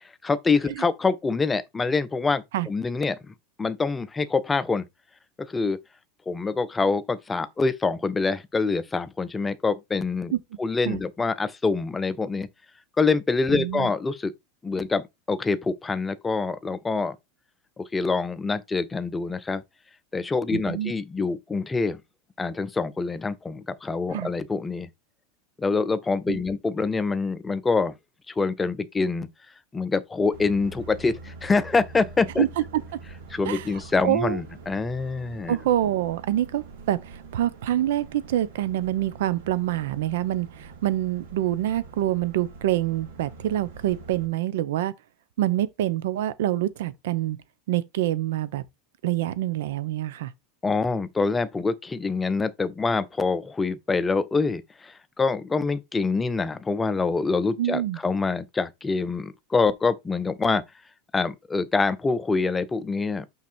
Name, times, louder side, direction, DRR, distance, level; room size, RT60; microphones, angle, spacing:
voice 1, 0.2-4.9 5.4-5.8 6.3-10.3 10.6-12.5 13.0-14.3 14.6-17.2 17.8-19.6 20.1-22.0 22.4-24.9 25.6-27.9 28.3-29.3 29.7-32.5 33.3-35.6 50.6-60.6 61.1-63.3, left 4 dB, 10° left, 0.6 m, -25 dB
voice 2, 13.5-13.9 20.5-20.9 24.1-24.3 26.3-26.4 32.4-32.8 33.4-33.6 34.0-34.4 35.5-44.9 45.4-47.4 47.7-48.6 49.0-50.3 57.6-58.0, right 13 dB, 75° right, 0.9 m, -26 dB
sound 1, 30.3-44.3, right 3 dB, 90° right, 3.6 m, -45 dB
6.0 x 4.6 x 4.5 m
supercardioid pair, 170°, 0 cm